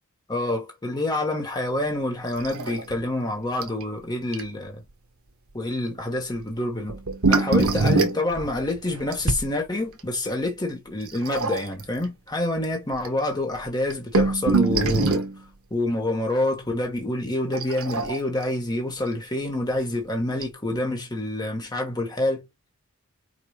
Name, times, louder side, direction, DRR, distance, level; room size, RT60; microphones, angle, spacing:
voice 1, 0.3-4.8 5.5-7.0 7.3-15.2 15.7-22.4, left 1 dB, 20° left, 1.5 m, -27 dB
sound 1, 2.4-3.0 3.2-3.3 3.6-3.8 4.3-4.4 6.9-9.5 11.1-11.9 12.6-12.7 12.9-13.1 13.7-15.4 17.5-18.4 19.7-19.8 20.4-20.5, right 3 dB, 70° right, 1.1 m, -23 dB
5.3 x 2.6 x 2.9 m
head